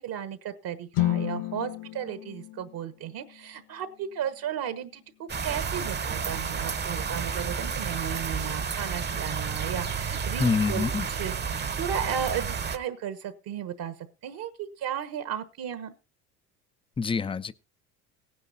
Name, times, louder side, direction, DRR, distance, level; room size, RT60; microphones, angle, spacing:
voice 1, 0.0-5.0 5.4-10.8 11.2-13.9 14.2-15.9, right 9 dB, 50° right, 1.2 m, -34 dB
sound 1, 0.9-5.0, left 16 dB, 45° left, 0.9 m, -33 dB
sound 2, 5.3-12.8, right 6 dB, 25° right, 0.9 m, -31 dB
voice 2, 10.4-11.1 17.0-17.5, left 5 dB, 10° left, 0.5 m, -26 dB
17.5 x 10.0 x 2.7 m
hypercardioid pair, 70°, 45 cm